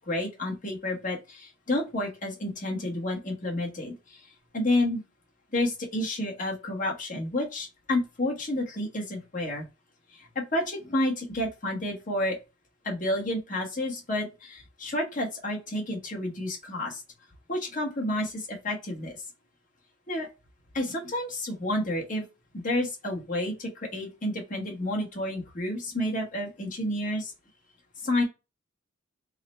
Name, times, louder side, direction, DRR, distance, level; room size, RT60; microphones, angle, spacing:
voice 1, 0.1-4.2 4.5-5.0 5.5-9.7 10.1-12.4 12.8-17.0 17.5-19.2 20.1-20.3 20.7-22.2 22.5-27.3 28.0-28.2, left 1 dB, 40° left, -1 dB, 1.1 m, -30 dB
3.7 x 2.1 x 4.1 m, 0.26 s
head